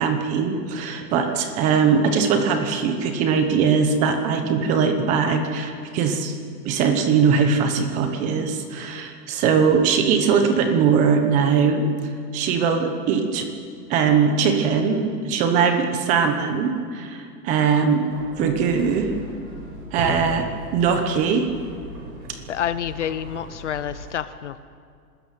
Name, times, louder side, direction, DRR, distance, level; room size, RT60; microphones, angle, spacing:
voice 1, 0.0-6.4 6.6-11.8 12.3-13.5 13.9-18.0 18.4-19.1 19.9-21.5, right 6 dB, 15° right, 6 dB, 1.0 m, -21 dB
sound 1, 18.1-24.1, right 1 dB, 60° right, 7.4 m, -37 dB
voice 2, 22.5-24.6, left 9 dB, 45° left, 14 dB, 0.6 m, -28 dB
24.5 x 13.5 x 9.2 m, 2.2 s
hypercardioid pair, 170°, 49 cm